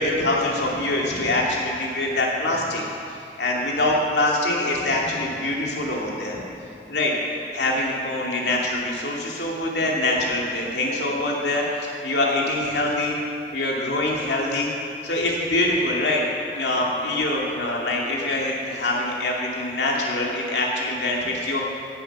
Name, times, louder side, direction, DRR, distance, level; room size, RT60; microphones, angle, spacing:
voice 1, 0.0-2.8 3.4-6.4 6.9-7.1 7.5-13.2 13.5-14.7 15.0-16.3 16.5-21.6, left 2 dB, 80° left, -2 dB, 2.4 m, -24 dB
16.5 x 7.9 x 6.0 m, 2.5 s
head